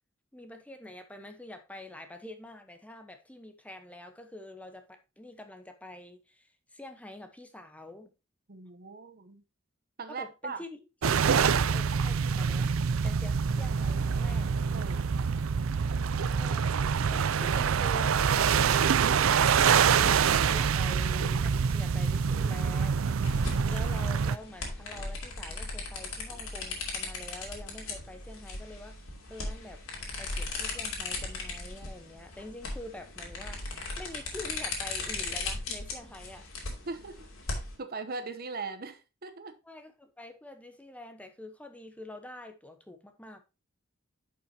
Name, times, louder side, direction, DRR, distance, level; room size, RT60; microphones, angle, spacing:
voice 1, 0.3-8.1 10.1-12.7 13.0-14.5 16.3-16.8 17.1-36.5 39.6-43.4, left 1 dB, 5° left, 1.0 m, -46 dB
voice 2, 8.5-9.4 10.0-10.6 14.7-15.1 36.9-37.2 37.8-39.6, right 4 dB, 45° right, 0.9 m, -39 dB
sound 1, 11.0-24.4, right 6 dB, 75° right, 0.5 m, -26 dB
sound 2, 23.2-37.8, left 3 dB, 85° left, 2.9 m, -37 dB
11.0 x 5.7 x 2.8 m
head